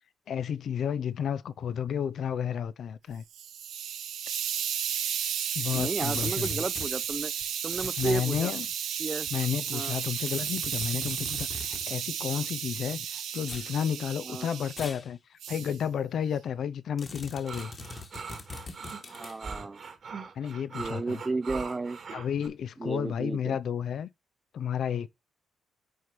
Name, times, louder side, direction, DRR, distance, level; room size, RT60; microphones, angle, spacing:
voice 1, 0.3-3.2 5.6-6.6 8.0-8.7 9.3-17.7 20.3-21.2 22.1-24.1 24.5-25.1, left 8 dB, 65° left, 0.6 m, -32 dB
Hiss, 3.1-14.9 15.4-15.8, right 9 dB, 80° right, 1.2 m, -33 dB
sound 1, 5.7-6.9 7.7-8.7 10.2-12.0 13.4-13.7 14.7-15.1 15.5-15.6 17.0-19.4, left 3 dB, 35° left, 1.5 m, -42 dB
voice 2, 5.7-7.3 7.6-8.5 9.0-9.3 9.7-9.9 14.2-14.5 19.1-19.8 20.7-22.0 22.8-23.6, right 3 dB, 25° right, 0.5 m, -33 dB
sound 2, 17.5-22.5, right 5 dB, 50° right, 2.1 m, -41 dB
6.4 x 4.4 x 5.0 m
cardioid pair, 90°, 0 cm